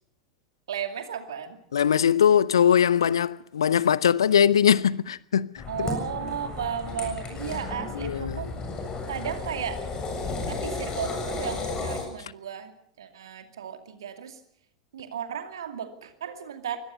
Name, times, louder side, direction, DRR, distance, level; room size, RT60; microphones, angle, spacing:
voice 1, 0.7-1.6 5.7-8.5 9.1-9.9 10.5-14.4 14.9-16.8, right 8 dB, 65° right, 2.4 m, -34 dB
voice 2, 1.7-5.9 7.9-8.5, left 8 dB, 70° left, 0.7 m, -21 dB
sound 1, 5.6-12.0, left 3 dB, 30° left, 7.3 m, -33 dB
23.5 x 17.5 x 6.9 m
figure-of-eight pair, 80°, 3 cm